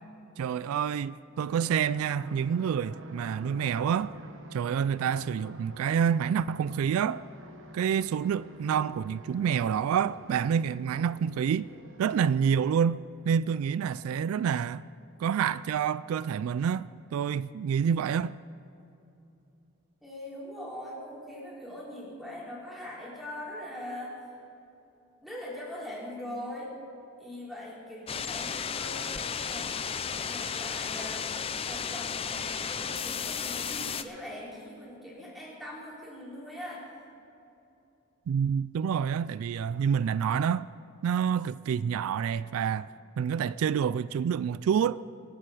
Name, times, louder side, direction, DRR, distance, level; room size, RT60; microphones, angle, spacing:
voice 1, 0.4-4.2 4.5-7.2 7.7-11.7 12.0-14.9 15.2-18.3 38.3-40.7 41.0-42.9 43.2-45.0, right 7 dB, 80° right, 0.3 m, -28 dB
sound 1, 1.5-12.6, right 1 dB, 60° right, 1.1 m, -47 dB
voice 2, 20.0-24.2 25.2-26.7 27.2-36.9, left 1 dB, ahead, 3.5 m, -42 dB
sound 2, 28.1-34.0, left 7 dB, 25° left, 0.4 m, -34 dB
24.5 x 8.5 x 4.9 m
head